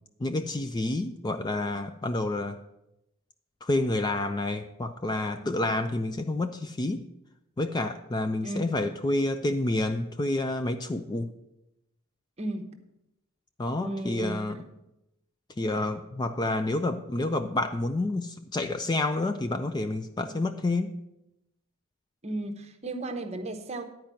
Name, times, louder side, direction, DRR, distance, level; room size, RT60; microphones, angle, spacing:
voice 1, 0.2-2.6 3.6-7.0 7.6-11.3 13.6-14.6 15.6-20.9, left 2 dB, 20° left, 8 dB, 0.4 m, -29 dB
voice 2, 12.4-12.8 13.8-14.6 22.2-23.8, right 2 dB, 30° right, 7 dB, 0.9 m, -34 dB
10.5 x 4.6 x 7.5 m, 0.89 s
head